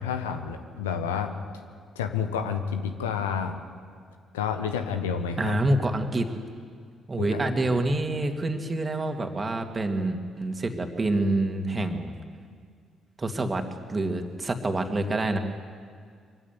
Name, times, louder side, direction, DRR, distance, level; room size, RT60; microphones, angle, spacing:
voice 1, 0.0-1.4 1.9-3.6 4.3-5.5 7.2-7.8, left 7 dB, 80° left, 8 dB, 1.2 m, -30 dB
voice 2, 5.4-6.3 7.1-12.1 13.2-15.4, right 2 dB, 30° right, 5 dB, 2.6 m, -27 dB
24.0 x 15.5 x 9.6 m, 2.1 s
figure-of-eight pair, 45°, 0 cm